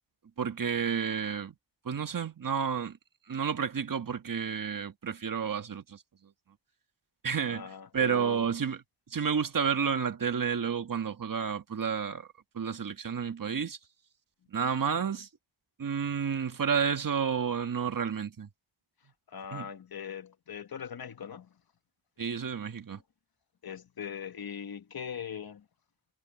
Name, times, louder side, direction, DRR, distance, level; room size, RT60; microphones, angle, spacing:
voice 1, 0.4-1.5 1.8-3.0 3.3-6.3 7.2-8.8 9.1-12.3 12.5-13.8 14.5-15.3 15.8-18.5 19.5-19.7 22.2-23.0, right 7 dB, 45° right, 1.5 m, -31 dB
voice 2, 7.4-8.5 19.3-21.5 23.6-25.6, left 7 dB, 50° left, 1.3 m, -40 dB
wide cardioid pair, 125°, 46 cm